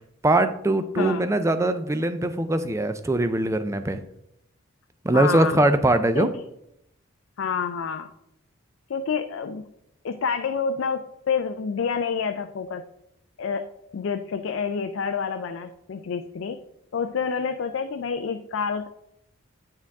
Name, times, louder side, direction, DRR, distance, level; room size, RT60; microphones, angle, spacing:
voice 1, 0.2-4.0 5.0-6.3, right 1 dB, 15° right, 10 dB, 0.3 m, -22 dB
voice 2, 5.1-5.6 6.1-6.3 7.4-8.1 8.9-9.7 10.0-12.8 13.4-13.7 13.9-16.6 16.9-18.9, left 6 dB, 65° left, 7 dB, 0.4 m, -28 dB
8.7 x 4.5 x 3.5 m, 0.78 s
head